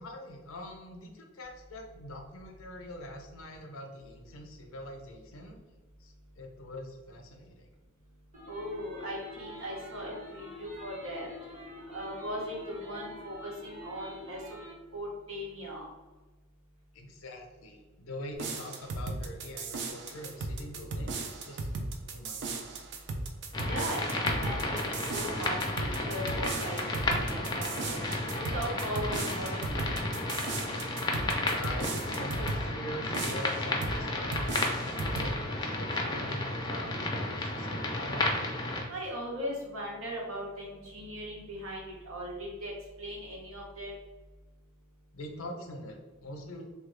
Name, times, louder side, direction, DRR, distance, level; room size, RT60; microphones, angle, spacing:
voice 1, 0.0-5.6 6.0-7.7 16.9-21.7 22.0-22.7 31.5-38.3 45.1-46.7, left 1 dB, 90° left, 3 dB, 0.6 m, -44 dB
sound 1, 8.3-14.7, left 1 dB, 40° right, 1.1 m, -47 dB
voice 2, 8.5-11.3 11.9-14.4 14.9-15.9 23.6-25.6 26.0-28.0 28.5-30.3 38.9-42.7 43.0-43.9, equal, 80° right, -3 dB, 1.1 m, -38 dB
sound 2, 18.3-32.7 33.1-34.0 34.3-35.3, right 3 dB, 60° right, 0.4 m, -37 dB
sound 3, 23.5-38.8, left 2 dB, 20° left, 0.4 m, -32 dB
3.2 x 2.3 x 3.2 m, 1.1 s
head